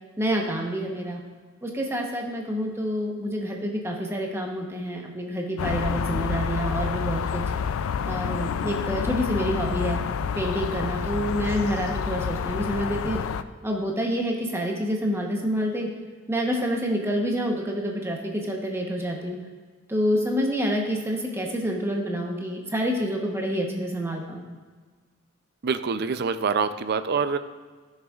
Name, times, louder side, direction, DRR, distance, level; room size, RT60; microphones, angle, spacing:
voice 1, 0.2-1.2 1.6-7.4 8.0-10.0 10.4-13.2 13.6-15.9 16.3-19.4 19.9-24.5, equal, 10° right, 0 dB, 0.9 m, -27 dB
sound 1, 5.6-13.4, left 6 dB, 90° left, 0.4 m, -28 dB
voice 2, 25.6-27.4, right 5 dB, 50° right, 11 dB, 0.4 m, -25 dB
14.0 x 6.6 x 2.4 m, 1.5 s
head